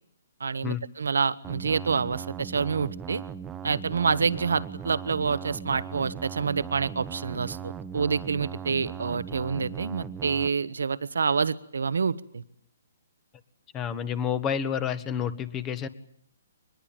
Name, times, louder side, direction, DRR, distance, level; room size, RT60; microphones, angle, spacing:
voice 1, 0.4-3.2 3.6-12.4, right 5 dB, 80° right, 14 dB, 1.3 m, -27 dB
sound 1, 1.4-10.5, right 8 dB, 15° right, 1.0 m, -39 dB
voice 2, 13.7-15.9, left 8 dB, 20° left, 13 dB, 1.6 m, -29 dB
24.0 x 21.0 x 9.0 m, 0.67 s
hypercardioid pair, 145°, 0 cm